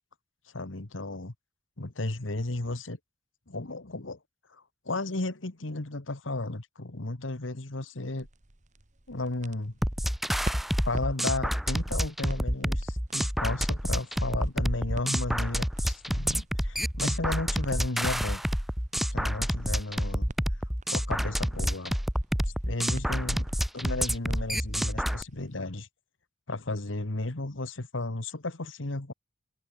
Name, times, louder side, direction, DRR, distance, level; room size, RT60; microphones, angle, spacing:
voice 1, 0.5-1.3 1.8-3.0 3.5-4.2 4.5-8.3 9.1-9.7 10.8-18.4 19.1-20.3 20.9-21.9 22.5-23.5 23.7-25.9 26.5-29.1, left 2 dB, 85° left, 1.7 m, -34 dB
sound 1, 8.0-25.6, right 1 dB, 40° right, 1.6 m, -48 dB
sound 2, 9.8-25.2, equal, ahead, 0.4 m, -28 dB
head